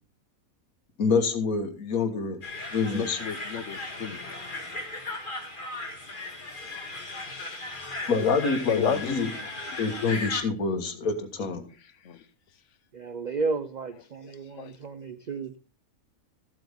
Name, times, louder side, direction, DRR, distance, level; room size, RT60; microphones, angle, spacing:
voice 1, 1.0-2.4 2.7-3.1 8.1-9.3 9.8-11.7, left 4 dB, 80° left, 1.9 m, -26 dB
sound 1, 2.4-10.4, left 2 dB, 35° left, 2.1 m, -37 dB
voice 2, 2.9-4.2 7.1-7.9 8.6-10.1 10.6-10.7 11.0-11.1 11.8-12.3 13.8-14.7, left 7 dB, 60° left, 1.2 m, -33 dB
voice 3, 12.9-15.6, right 4 dB, 60° right, 0.4 m, -33 dB
14.0 x 7.8 x 3.5 m
omnidirectional pair, 1.5 m